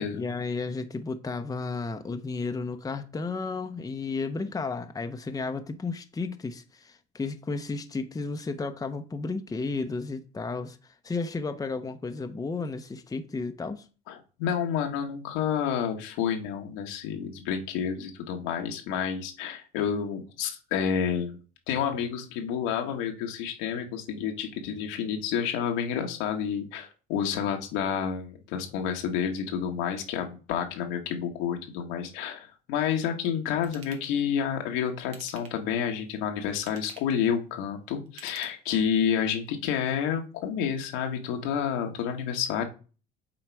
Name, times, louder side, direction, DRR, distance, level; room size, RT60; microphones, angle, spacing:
voice 1, 0.1-10.8 11.0-13.9, left 4 dB, 15° left, 0.7 m, -33 dB
voice 2, 14.1-21.4 21.7-42.6, left 8 dB, 85° left, 1.3 m, -29 dB
Ratchet pawl / Tools, 33.6-34.1 35.0-35.7 36.5-37.2 38.1-39.0 39.5-39.6, right 6 dB, 75° right, 1.6 m, -49 dB
7.5 x 4.0 x 4.6 m
supercardioid pair, 95°, 21 cm